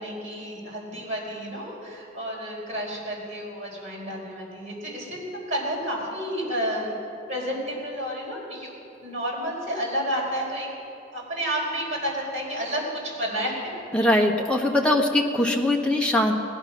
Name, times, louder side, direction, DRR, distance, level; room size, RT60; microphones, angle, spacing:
voice 1, 0.0-6.9 7.3-8.7 9.0-10.7 11.1-13.6, equal, 40° right, -4 dB, 4.3 m, -30 dB
voice 2, 13.9-16.3, left 1 dB, 5° left, 0 dB, 1.3 m, -21 dB
18.5 x 11.5 x 6.0 m, 2.5 s
head